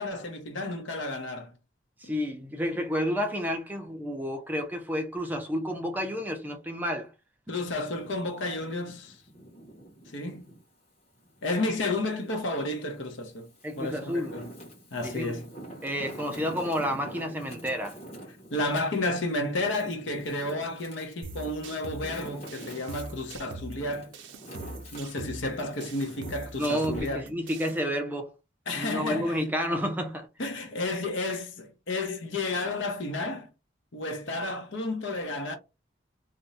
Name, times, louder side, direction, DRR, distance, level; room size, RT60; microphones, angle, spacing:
voice 1, 0.0-1.5 2.0-2.1 7.5-9.2 10.1-10.5 11.4-13.5 13.8-14.5 14.9-15.5 18.5-24.1 24.9-27.3 28.7-29.4 30.4-33.5 33.9-35.6, left 2 dB, 75° left, 0.8 m, -32 dB
voice 2, 2.0-7.1 13.6-14.4 15.0-15.4 15.8-18.0 26.6-28.3 28.7-30.3, equal, 10° right, 0.4 m, -30 dB
Wind, 7.8-10.6 11.1-12.4 13.0-27.0, right 1 dB, 35° left, 1.1 m, -46 dB
sound 1, 21.2-27.8, right 2 dB, 75° right, 0.5 m, -43 dB
2.6 x 2.1 x 4.0 m
head